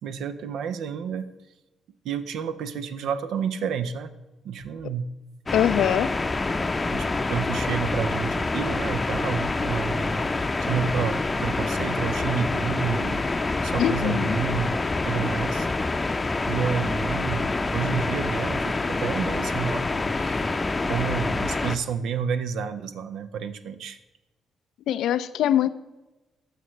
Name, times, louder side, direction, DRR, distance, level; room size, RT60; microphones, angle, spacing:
voice 1, 0.0-1.3 2.0-4.1 4.4-5.1 6.9-14.8 15.1-15.7 16.5-20.4 20.8-24.0, right 6 dB, 65° right, 11 dB, 0.5 m, -30 dB
voice 2, 5.5-6.1 13.8-14.4 24.9-25.7, left 11 dB, 65° left, 14 dB, 0.3 m, -23 dB
sound 1, 5.5-21.8, left 3 dB, 25° left, 0.6 m, -26 dB
15.5 x 6.5 x 3.1 m, 1.1 s
figure-of-eight pair, 40°, 0 cm